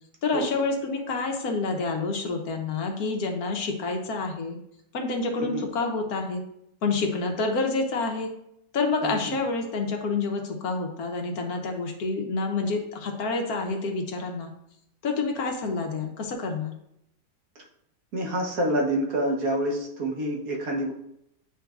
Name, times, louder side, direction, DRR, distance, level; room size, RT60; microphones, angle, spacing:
voice 1, 0.2-4.6 4.9-6.4 6.8-8.3 8.7-14.5 15.0-16.7, left 3 dB, 65° left, 3 dB, 1.2 m, -28 dB
voice 2, 9.0-9.3 17.6-17.7 18.1-20.9, right 1 dB, 60° right, 0 dB, 1.4 m, -27 dB
8.9 x 4.6 x 2.4 m, 0.77 s
omnidirectional pair, 1.8 m